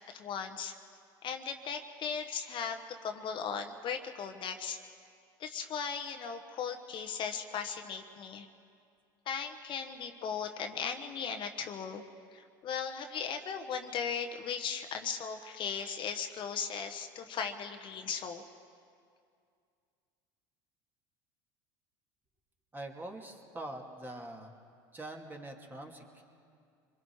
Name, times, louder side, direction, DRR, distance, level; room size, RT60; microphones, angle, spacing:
voice 1, 0.1-0.7 1.2-4.8 5.4-8.5 9.3-12.0 12.3-18.4, left 6 dB, 45° left, 6 dB, 1.1 m, -37 dB
voice 2, 22.7-24.6 24.9-26.2, right 1 dB, 15° right, 1 dB, 2.5 m, -44 dB
25.0 x 22.0 x 4.8 m, 2.3 s
hypercardioid pair, 90°, 11 cm